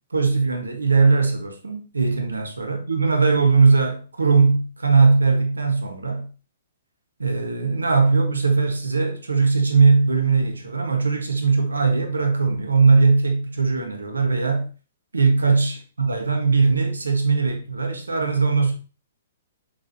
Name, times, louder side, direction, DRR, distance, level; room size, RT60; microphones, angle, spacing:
voice 1, 0.1-6.3 7.2-14.7 15.1-18.7, right 4 dB, 80° right, 1.7 m, -20 dB
7.3 x 6.7 x 3.0 m
figure-of-eight pair, 120°, 0 cm